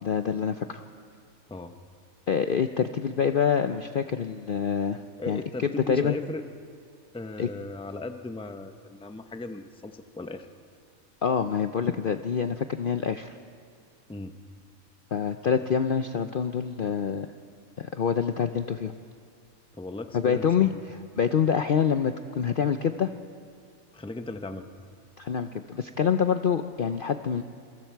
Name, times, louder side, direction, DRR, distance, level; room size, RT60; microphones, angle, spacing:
voice 1, 0.0-0.8 2.3-6.2 7.4-7.5 11.2-13.4 15.1-17.3 17.8-18.9 20.1-23.1 25.2-27.4, left 7 dB, 55° left, 8 dB, 0.6 m, -26 dB
voice 2, 5.2-6.5 7.1-10.5 14.1-14.4 19.7-20.8 23.9-24.6, left 2 dB, 5° left, 7 dB, 0.6 m, -37 dB
28.5 x 23.0 x 4.6 m, 2.3 s
omnidirectional pair, 1.5 m